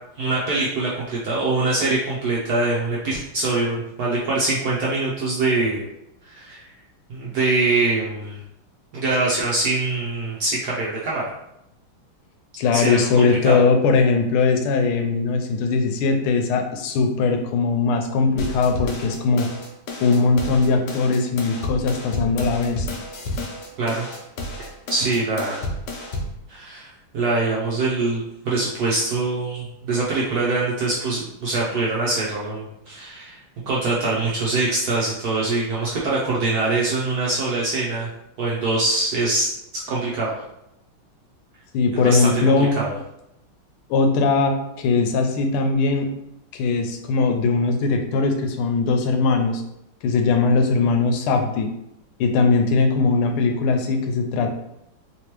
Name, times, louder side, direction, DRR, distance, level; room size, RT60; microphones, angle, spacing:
voice 1, 0.2-5.8 6.3-6.6 7.1-8.4 8.9-11.2 12.7-13.6 23.8-24.1 24.9-25.7 26.5-33.4 33.7-38.1 38.4-39.5 39.9-40.3 42.0-42.9, right 3 dB, 70° right, -5 dB, 0.9 m, -23 dB
voice 2, 12.6-19.5 20.0-22.9 41.7-42.8 43.9-46.1 46.5-49.6 50.0-51.7 52.2-54.5, left 4 dB, 90° left, 5 dB, 1.5 m, -20 dB
sound 1, 18.4-26.4, left 1 dB, 65° left, 1.1 m, -31 dB
3.4 x 3.0 x 3.0 m, 0.83 s
omnidirectional pair, 2.3 m